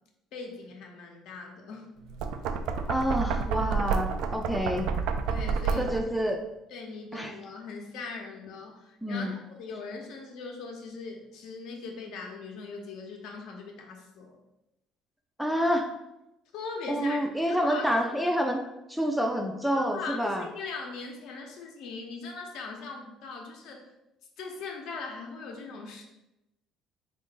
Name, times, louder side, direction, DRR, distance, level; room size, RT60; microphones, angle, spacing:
voice 1, 0.3-2.0 5.3-6.0 6.7-14.4 16.5-17.2 17.4-18.2 19.8-23.8 24.4-26.0, left 4 dB, 70° left, 1 dB, 0.8 m, -40 dB
Knock, 2.0-6.2, right 5 dB, 75° right, 0.3 m, -29 dB
voice 2, 2.9-4.9 5.8-6.4 7.1-7.3 9.0-9.3 15.4-15.9 16.9-18.6 18.9-20.4, equal, ahead, 2 dB, 0.4 m, -28 dB
3.6 x 2.5 x 3.7 m, 0.91 s
cardioid pair, 125°, 0 cm